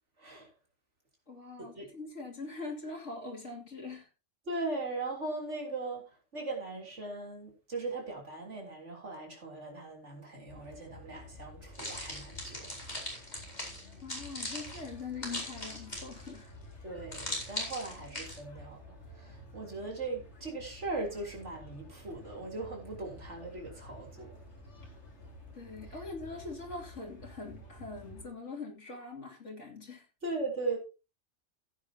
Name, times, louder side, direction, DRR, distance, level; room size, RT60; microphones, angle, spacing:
voice 1, 0.2-0.5 1.6-1.9 4.5-12.7 16.8-24.4 30.2-30.8, right 3 dB, 75° right, 3.7 m, -39 dB
voice 2, 1.3-4.1 14.0-16.6 25.5-30.1, left 3 dB, 85° left, 3.1 m, -43 dB
sound 1, 10.5-28.2, left 1 dB, 70° left, 3.2 m, -51 dB
sound 2, 11.7-16.4 17.1-18.4, left 1 dB, 35° left, 4.6 m, -39 dB
15.5 x 9.0 x 2.9 m
omnidirectional pair, 1.2 m